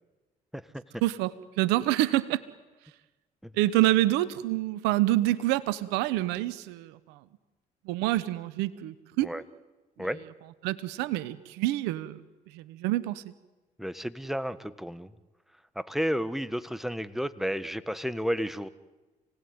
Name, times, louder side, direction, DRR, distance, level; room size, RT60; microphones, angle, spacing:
voice 1, 1.0-2.4 3.5-7.2 7.8-9.3 10.6-12.2 12.5-13.3, right 16 dB, 90° right, 16 dB, 1.0 m, -27 dB
voice 2, 13.8-15.1 15.7-18.7, equal, ahead, 14 dB, 1.5 m, -32 dB
29.0 x 18.5 x 9.6 m, 1.2 s
supercardioid pair, 60°, 17 cm